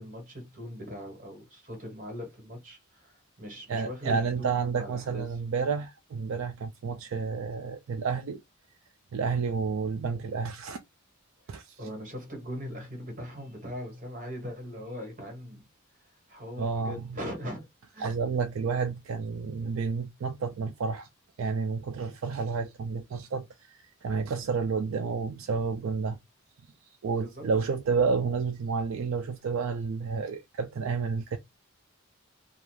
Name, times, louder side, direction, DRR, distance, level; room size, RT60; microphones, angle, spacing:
voice 1, 0.0-5.4 11.4-15.7 16.0-17.7 17.9-18.2 27.2-27.5, equal, 40° right, 1.3 m, -40 dB
voice 2, 3.7-8.4 9.1-10.8 11.5-11.8 16.6-17.0 18.0-21.1 21.4-26.2 27.0-31.4, right 5 dB, 65° right, 0.3 m, -30 dB
2.4 x 2.3 x 3.1 m
head